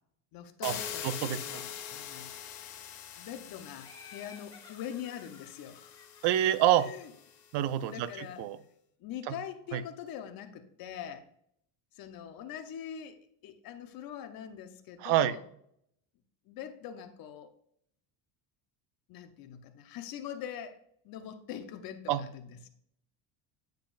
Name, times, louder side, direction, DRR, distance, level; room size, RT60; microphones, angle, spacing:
voice 1, 0.3-2.3 3.2-6.0 6.8-7.1 7.9-8.5 9.0-11.3 11.9-15.4 16.5-17.5 19.1-22.7, left 9 dB, 50° left, 8 dB, 0.9 m, -43 dB
sound 1, 0.6-7.5, left 9 dB, 80° left, 1.4 m, -43 dB
voice 2, 1.0-1.4 6.2-6.9 7.5-8.1 8.4-8.6 9.3-9.4 9.7-9.8 15.0-15.4 22.1-22.2, right 12 dB, 65° right, 14 dB, 0.6 m, -26 dB
Laughter, 3.8-7.4, left 4 dB, 10° left, 1.4 m, -56 dB
9.2 x 5.1 x 2.5 m, 0.68 s
cardioid pair, 150°, 44 cm